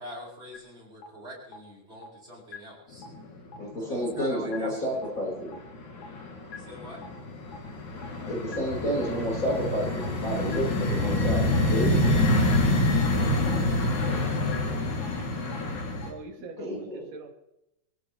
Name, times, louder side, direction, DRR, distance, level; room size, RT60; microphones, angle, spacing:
voice 1, 0.0-3.0 3.9-4.8 6.6-7.1, equal, 20° right, -5 dB, 8.1 m, -43 dB
sound 1, 0.5-0.6 1.0-1.1 1.5-1.6 2.0-2.1 2.5-2.6 3.0-3.1 3.5-3.6 4.0-4.1 4.5-4.6 5.0-5.1 5.5-5.6 6.0-6.1 6.5-6.6 7.0-7.1 7.5-7.6 8.0-8.1 8.5-8.6 9.0-9.1 9.5-9.6 10.0-10.1 10.5-10.6 11.0-11.1 11.5-11.6 12.0-12.1 12.5-12.6 13.0-13.1 13.5-13.6 14.0-14.1 14.5-14.6 15.0-15.1 15.5-15.6 16.0-16.1, left 5 dB, 50° left, 2.8 m, -41 dB
sound 2, 3.0-3.6 3.9-4.6 5.0-16.1, left 1 dB, 70° left, 4.4 m, -27 dB
voice 2, 3.6-5.5 8.3-12.2 16.6-17.1, equal, 25° left, -5 dB, 5.7 m, -30 dB
voice 3, 13.4-15.0 16.0-17.3, right 3 dB, 40° right, 1 dB, 2.4 m, -45 dB
26.0 x 16.5 x 3.3 m, 0.87 s
omnidirectional pair, 3.6 m